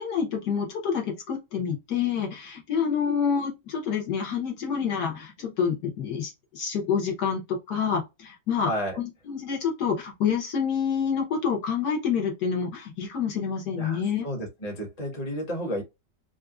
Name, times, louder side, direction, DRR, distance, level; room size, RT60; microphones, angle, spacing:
voice 1, 0.0-7.4 7.7-8.7 9.0-14.2, left 7 dB, 65° left, 1.5 m, -27 dB
voice 2, 8.6-9.0 13.8-15.8, equal, 25° left, 1.1 m, -32 dB
3.7 x 2.5 x 2.3 m
omnidirectional pair, 1.9 m